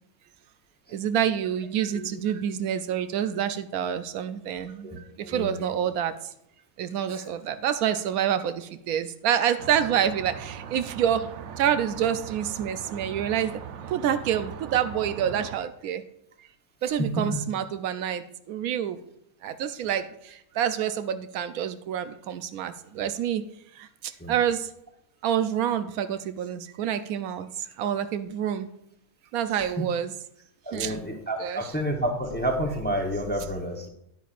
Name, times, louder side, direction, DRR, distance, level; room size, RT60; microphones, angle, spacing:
voice 1, 0.9-4.9 5.3-6.1 6.8-11.2 11.6-13.5 13.9-16.0 16.8-19.0 19.4-20.1 20.6-23.4 24.3-24.7 25.2-27.5 27.8-28.7 29.3-30.1 30.7-31.0 31.4-31.7, right 9 dB, 85° right, 10 dB, 1.1 m, -27 dB
voice 2, 5.2-5.5 7.1-7.2 17.0-17.1 24.2-24.3 30.7-33.9, equal, 10° left, 2 dB, 0.6 m, -29 dB
sound 1, 9.6-15.6, right 8 dB, 65° right, 0.8 m, -39 dB
10.0 x 9.1 x 2.5 m, 0.76 s
omnidirectional pair, 1.5 m